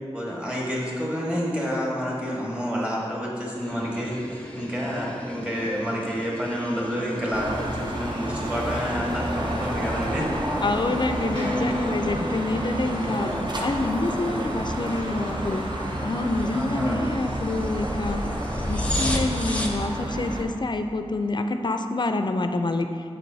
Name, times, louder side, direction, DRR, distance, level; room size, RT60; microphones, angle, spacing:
voice 1, 0.1-10.3 11.2-11.3 16.5-17.0, equal, 10° right, -4 dB, 1.5 m, -29 dB
sound 1, 3.6-19.9, left 1 dB, 10° left, 0.7 m, -36 dB
sound 2, 7.3-20.4, right 1 dB, 45° right, 0.7 m, -30 dB
sound 3, 9.2-14.8, equal, 90° right, 1.2 m, -36 dB
voice 2, 10.6-13.3 13.6-15.6 16.0-18.2 18.7-22.9, left 2 dB, 45° left, 7 dB, 0.4 m, -27 dB
7.5 x 6.1 x 2.7 m, 2.3 s
wide cardioid pair, 65°, 11 cm